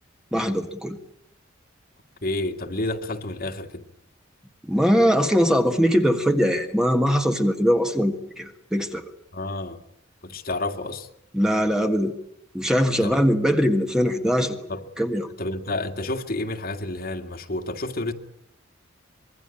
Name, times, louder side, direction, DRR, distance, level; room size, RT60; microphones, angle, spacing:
voice 1, 0.3-1.0 4.6-9.1 11.3-12.1 12.5-14.7 15.0-15.3, equal, 5° right, 5 dB, 1.6 m, -21 dB
voice 2, 2.2-3.8 9.3-9.8 10.2-11.1 13.0-13.2 14.7-14.8 15.4-18.1, left 2 dB, 50° left, 5 dB, 2.1 m, -30 dB
25.5 x 22.0 x 8.8 m, 0.75 s
head